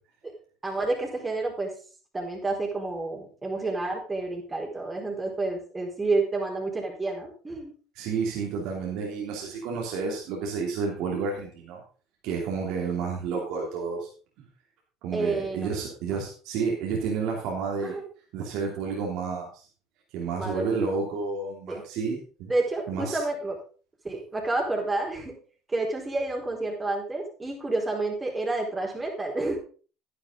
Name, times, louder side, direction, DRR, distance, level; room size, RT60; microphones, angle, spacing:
voice 1, 0.6-1.7 2.1-7.7 15.1-15.7 16.1-16.2 17.8-18.1 20.4-21.0 21.7-21.8 22.5-23.6 24.0-25.4 25.7-29.6, right 2 dB, 20° right, 1 dB, 4.3 m, -29 dB
voice 2, 7.9-11.8 12.2-14.1 14.4-14.5 15.0-18.0 18.3-19.6 20.1-22.5 22.9-23.2, right 5 dB, 70° right, -1 dB, 3.0 m, -30 dB
10.5 x 10.0 x 3.9 m, 0.38 s
supercardioid pair, 90°, 0 cm